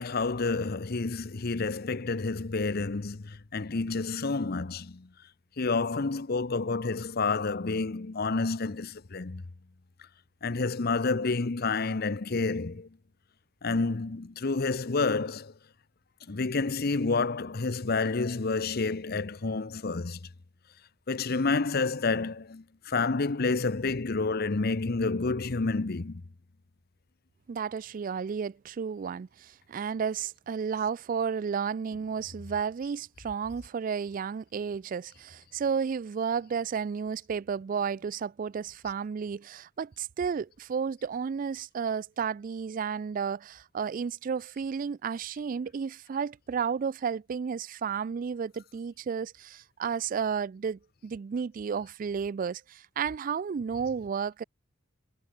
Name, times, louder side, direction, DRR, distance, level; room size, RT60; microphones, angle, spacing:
voice 1, 0.0-5.1 5.6-9.4 10.4-12.9 13.6-15.5 16.3-20.2 21.1-26.2, left 3 dB, 50° left, 0.8 m, -29 dB
voice 2, 27.5-54.4, right 6 dB, 45° right, 0.3 m, -32 dB
head